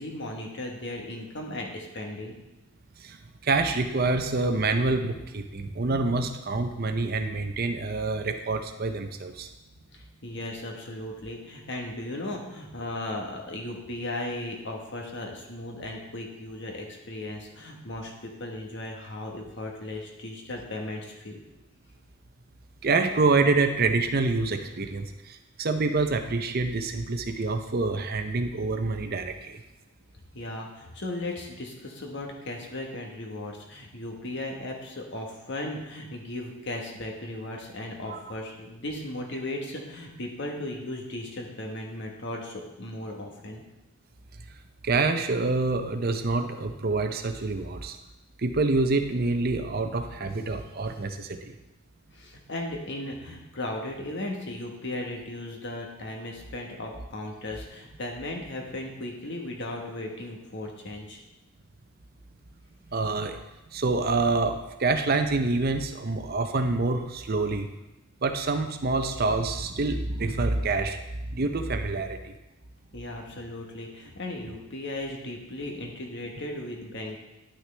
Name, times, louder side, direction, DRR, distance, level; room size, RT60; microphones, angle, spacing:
voice 1, 0.0-2.3 9.9-21.4 30.3-43.6 52.1-61.2 72.9-77.2, left 1 dB, 50° left, 1 dB, 1.3 m, -36 dB
voice 2, 3.4-9.5 22.8-29.6 38.1-38.2 44.8-48.0 48.4-51.6 62.9-63.4 63.7-67.7 68.2-71.0 71.3-72.3, right 3 dB, 40° right, 7 dB, 0.6 m, -26 dB
11.0 x 6.0 x 3.3 m, 0.98 s
head